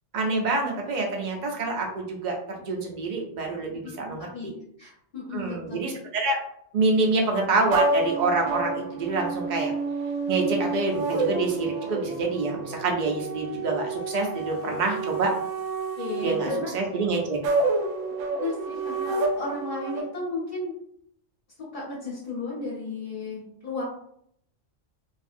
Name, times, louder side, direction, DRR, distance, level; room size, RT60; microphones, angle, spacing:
voice 1, 0.1-4.5 5.3-6.4 6.7-9.7 10.3-15.3 16.2-17.4, right 3 dB, 50° right, 1 dB, 0.6 m, -27 dB
voice 2, 4.2-4.5 4.8-5.8 16.0-16.7 18.3-20.7 21.7-23.8, left 2 dB, 45° left, -6 dB, 1.0 m, -34 dB
sound 1, 7.7-20.0, right 3 dB, 80° right, 0.9 m, -29 dB
2.7 x 2.5 x 2.5 m, 0.69 s
omnidirectional pair, 1.3 m